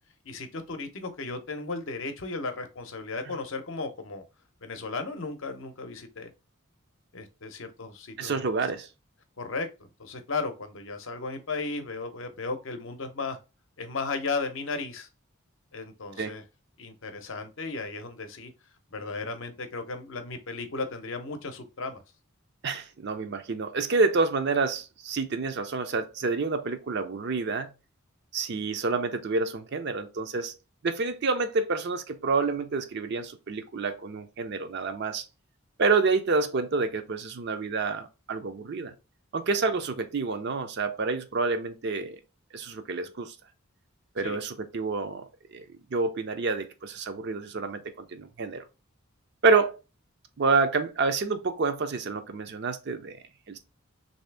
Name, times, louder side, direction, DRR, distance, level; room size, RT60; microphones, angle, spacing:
voice 1, 0.2-4.2 4.6-6.3 7.1-8.5 9.4-13.4 13.8-15.1 15.7-16.4 16.8-18.5 18.9-22.0 44.2-44.4, left 3 dB, 60° left, 0.6 m, -35 dB
voice 2, 8.2-8.9 16.2-16.3 22.6-27.7 28.3-30.5 30.8-35.2 35.8-38.9 39.3-42.2 42.5-43.3 44.2-48.6 49.4-49.8 50.4-53.2 53.5-53.6, right 4 dB, 50° right, 0.5 m, -28 dB
3.2 x 2.7 x 3.3 m
head